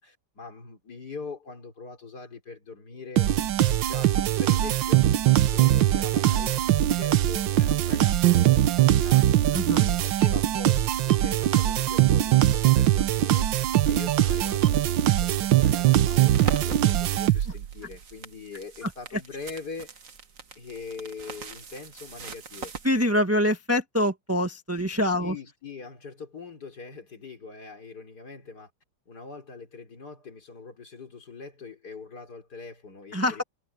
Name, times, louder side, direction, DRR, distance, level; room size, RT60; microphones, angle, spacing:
voice 1, 0.0-5.1 5.5-9.5 9.8-13.5 13.9-20.0 20.6-22.7 25.0-28.7 29.1-33.4, left 4 dB, 60° left, 4.0 m, -42 dB
sound 1, 3.2-17.7, right 13 dB, 90° right, 1.6 m, -21 dB
voice 2, 9.5-9.8 18.8-18.9 22.8-25.3 33.1-33.4, left 1 dB, 10° right, 1.4 m, -25 dB
sound 2, 16.3-23.1, right 5 dB, 50° right, 1.9 m, -39 dB
omnidirectional pair, 2.0 m